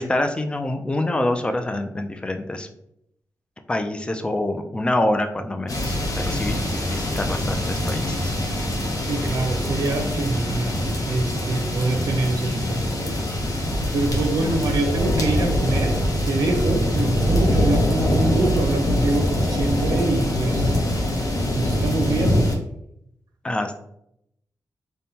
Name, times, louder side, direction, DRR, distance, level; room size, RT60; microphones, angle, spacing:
voice 1, 0.0-2.7 3.7-6.0 6.2-8.3 23.4-23.8, left 1 dB, 15° left, 7 dB, 0.3 m, -26 dB
sound 1, 5.7-22.5, left 1 dB, 65° left, 0.8 m, -23 dB
sound 2, 7.9-9.0 10.0-11.0 12.0-13.0, equal, 20° right, 0.8 m, -40 dB
voice 2, 9.1-13.3 13.9-16.0 16.2-22.6, right 2 dB, 90° right, 3 dB, 0.6 m, -25 dB
5.2 x 2.1 x 2.8 m, 0.77 s
wide cardioid pair, 120°, 7 cm